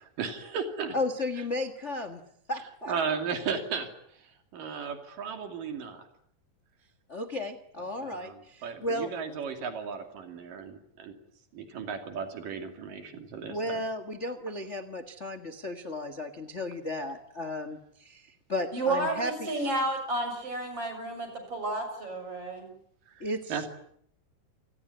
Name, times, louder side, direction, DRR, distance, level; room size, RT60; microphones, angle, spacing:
voice 1, 0.2-1.0 2.8-3.9 4.2-6.1 8.0-11.2 11.5-13.8 23.1-23.3 23.5-23.7, right 6 dB, 80° right, 6 dB, 4.2 m, -35 dB
voice 2, 0.9-2.2 2.5-2.9 7.1-9.1 13.5-19.5 23.2-23.7, left 1 dB, 35° left, 11 dB, 1.3 m, -34 dB
voice 3, 18.7-22.7, right 2 dB, 45° right, 7 dB, 7.8 m, -31 dB
29.0 x 19.5 x 9.7 m, 0.68 s
omnidirectional pair, 3.8 m